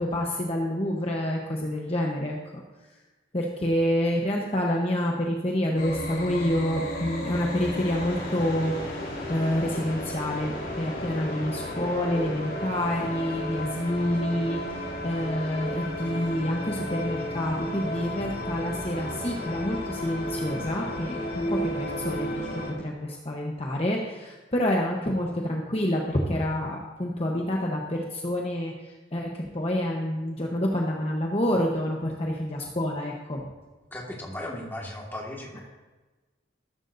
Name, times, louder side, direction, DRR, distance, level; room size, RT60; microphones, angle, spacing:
voice 1, 0.0-2.6 3.3-8.7 9.3-33.4, left 1 dB, 30° left, -1 dB, 1.0 m, -28 dB
sound 1, 5.8-22.7, equal, 55° left, 4.5 m, -33 dB
voice 2, 33.9-35.6, left 1 dB, 10° left, -2 dB, 1.9 m, -36 dB
14.5 x 13.5 x 2.7 m, 1.2 s
head